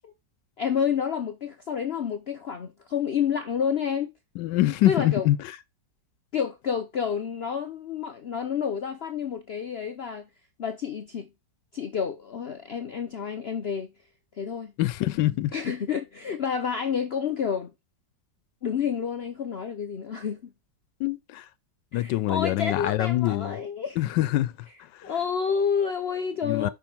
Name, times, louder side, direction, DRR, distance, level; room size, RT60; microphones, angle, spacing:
voice 1, 0.6-4.1 4.8-5.3 6.3-10.3 10.6-11.3 11.7-13.9 14.4-14.7 15.5-17.7 18.6-20.5 21.9-24.0 25.0-26.7, left 7 dB, 70° left, 0.5 m, -29 dB
voice 2, 4.4-5.4 14.8-15.5 21.0-21.4 21.9-23.6 24.0-24.5 26.4-26.7, left 15 dB, 90° left, 1.2 m, -24 dB
5.6 x 4.5 x 5.9 m
omnidirectional pair, 1.9 m